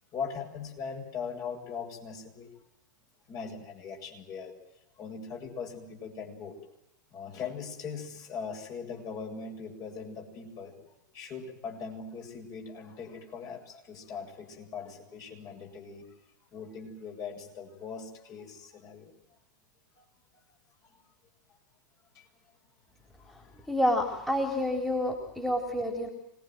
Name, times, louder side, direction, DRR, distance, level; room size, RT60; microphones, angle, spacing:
voice 1, 0.1-2.5 3.3-4.5 5.0-6.6 7.1-10.8 11.1-16.0 16.5-19.1 20.0-20.1 20.8-21.0 22.1-22.3 23.2-23.7, left 5 dB, 35° left, 1 dB, 7.9 m, -40 dB
voice 2, 23.7-26.1, left 1 dB, ahead, 4 dB, 4.2 m, -28 dB
26.5 x 21.0 x 7.8 m, 0.86 s
figure-of-eight pair, 100°, 10 cm